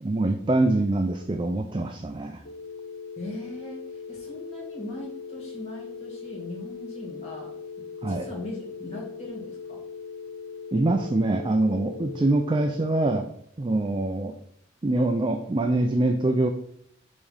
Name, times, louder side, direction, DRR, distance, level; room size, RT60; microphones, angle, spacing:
voice 1, 0.0-2.4 8.0-8.3 10.7-13.3 13.6-14.3 14.8-16.5, right 2 dB, 25° right, 5 dB, 0.4 m, -24 dB
sound 1, 2.4-12.5, left 5 dB, 70° left, 0.7 m, -40 dB
voice 2, 3.2-7.5 8.0-9.8, left 1 dB, 35° left, -4 dB, 2.1 m, -39 dB
5.1 x 3.5 x 5.5 m, 0.68 s
head